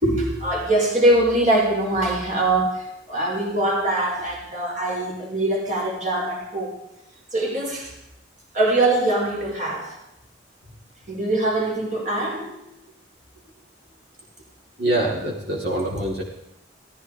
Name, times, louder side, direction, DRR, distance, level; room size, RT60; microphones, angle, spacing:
voice 1, 0.0-6.7 7.3-7.9 8.5-9.9 11.1-12.5, right 1 dB, 40° right, -1 dB, 5.2 m, -22 dB
voice 2, 14.8-16.2, right 1 dB, 60° right, -4 dB, 4.5 m, -24 dB
18.5 x 15.5 x 4.9 m, 0.86 s
head